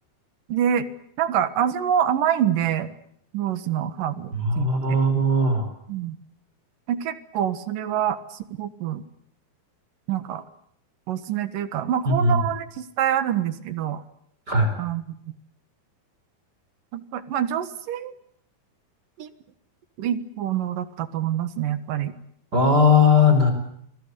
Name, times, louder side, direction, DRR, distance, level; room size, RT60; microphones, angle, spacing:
voice 1, 0.5-0.9 1.2-2.9 3.3-4.3 4.6-4.7 5.9-6.2 6.9-8.2 8.6-9.0 10.1-10.4 11.1-14.0 14.8-15.0 16.9-18.1 19.2-19.3 20.0-22.2, right 10 dB, 65° right, 13 dB, 2.9 m, -26 dB
voice 2, 4.3-5.6 12.2-12.4 14.5-14.7 22.5-23.5, left 3 dB, 25° right, 6 dB, 4.9 m, -18 dB
29.0 x 21.5 x 8.2 m, 0.68 s
omnidirectional pair, 4.4 m